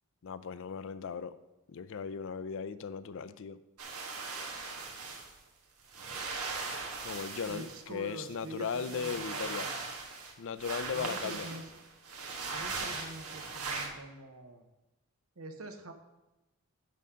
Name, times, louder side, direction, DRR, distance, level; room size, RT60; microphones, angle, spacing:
voice 1, 0.2-1.3 1.7-3.6 7.0-9.7 10.4-11.5, left 6 dB, 60° left, 14 dB, 0.4 m, -37 dB
sound 1, 3.8-5.3 5.9-7.8 8.2-10.3 10.6-13.9, right 4 dB, 90° right, 1.4 m, -39 dB
voice 2, 7.5-9.9 10.9-11.7 12.5-14.7 15.4-15.9, right 2 dB, 70° right, 6 dB, 0.9 m, -45 dB
10.5 x 3.8 x 5.6 m, 1.0 s
head